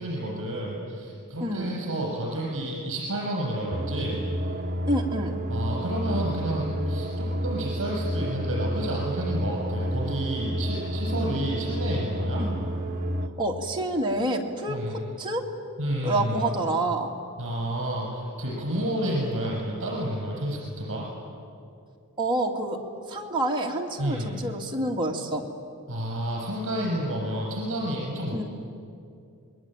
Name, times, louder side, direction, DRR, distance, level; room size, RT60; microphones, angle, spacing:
voice 1, 0.0-4.2 5.5-12.4 14.7-15.0 15.8-16.4 17.4-21.0 24.0-24.3 25.9-28.4, right 1 dB, 60° right, -3 dB, 6.5 m, -30 dB
voice 2, 1.4-1.7 4.9-5.4 12.4-12.6 13.4-15.5 16.0-17.1 22.2-22.8 23.1-25.5 28.3-28.4, right 1 dB, 20° right, -1 dB, 2.4 m, -28 dB
sound 1, 3.7-13.3, equal, 35° right, 1.3 m, -30 dB
27.0 x 21.0 x 9.0 m, 2.4 s
head